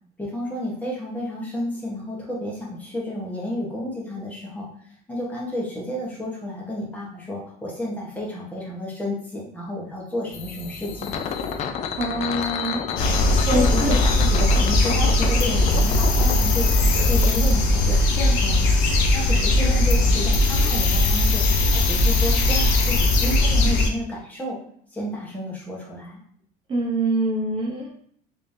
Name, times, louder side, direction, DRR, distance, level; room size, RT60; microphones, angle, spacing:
voice 1, 0.2-4.7 5.1-11.3 13.5-18.7 19.1-21.4 21.7-24.6 24.9-26.2, left 1 dB, 10° left, -4 dB, 1.1 m, -31 dB
sound 1, 10.3-17.3, left 7 dB, 35° left, 0.4 m, -30 dB
voice 2, 12.0-12.9 13.5-14.0 26.7-27.9, right 1 dB, 30° right, -4 dB, 0.9 m, -24 dB
sound 2, 13.0-23.9, left 2 dB, 90° left, 0.7 m, -19 dB
3.6 x 3.3 x 2.7 m, 0.63 s
cardioid pair, 145°, 19 cm